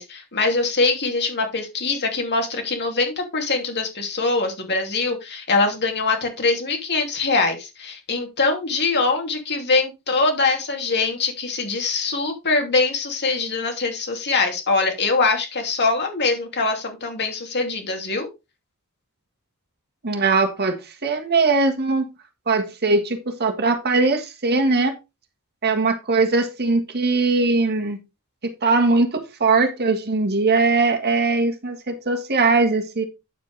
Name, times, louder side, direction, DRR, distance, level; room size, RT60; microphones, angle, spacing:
voice 1, 0.0-18.3, left 3 dB, 50° left, 3 dB, 2.7 m, -23 dB
voice 2, 20.0-22.1 22.5-24.9 25.6-28.0 28.4-33.0, right 3 dB, 50° right, 6 dB, 1.5 m, -20 dB
9.1 x 7.5 x 3.3 m, 0.25 s
head